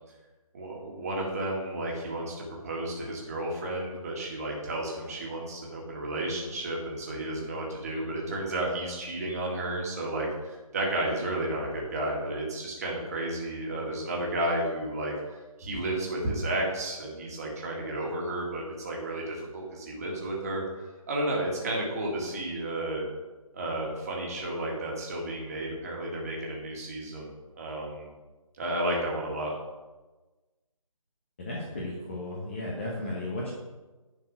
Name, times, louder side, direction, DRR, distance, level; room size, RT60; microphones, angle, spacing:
voice 1, 0.5-2.3 2.6-15.1 15.6-20.6 21.1-23.0 23.5-28.1 28.6-29.5, right 1 dB, 25° right, -2 dB, 1.9 m, -32 dB
voice 2, 31.4-33.5, left 1 dB, 20° left, -4 dB, 1.1 m, -34 dB
10.5 x 4.6 x 6.4 m, 1.2 s
figure-of-eight pair, 170°, 18 cm